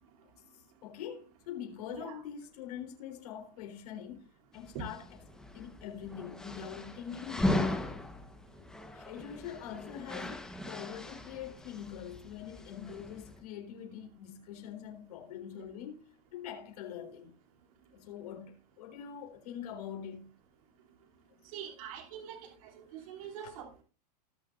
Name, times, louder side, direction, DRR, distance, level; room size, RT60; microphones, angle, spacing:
voice 1, 0.2-5.2 5.5-7.8 8.9-17.3 17.9-20.3 23.0-23.6, left 9 dB, 65° left, 4.0 m, -44 dB
sound 1, 4.5-13.4, left 1 dB, 5° left, 1.1 m, -38 dB
voice 2, 21.5-23.8, right 8 dB, 55° right, 3.0 m, -44 dB
19.5 x 6.7 x 2.5 m
supercardioid pair, 155°, 21 cm